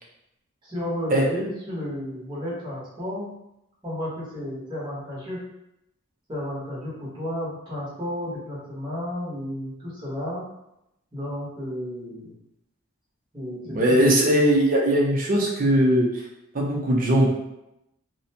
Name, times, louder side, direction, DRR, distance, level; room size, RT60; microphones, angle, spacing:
voice 1, 0.6-3.3 3.8-5.4 6.3-10.4 11.1-12.3 13.3-14.1, left 1 dB, 25° right, -8 dB, 1.0 m, -32 dB
voice 2, 13.7-16.1 16.5-17.4, right 1 dB, 40° right, -2 dB, 0.6 m, -20 dB
2.6 x 2.1 x 2.7 m, 0.85 s
head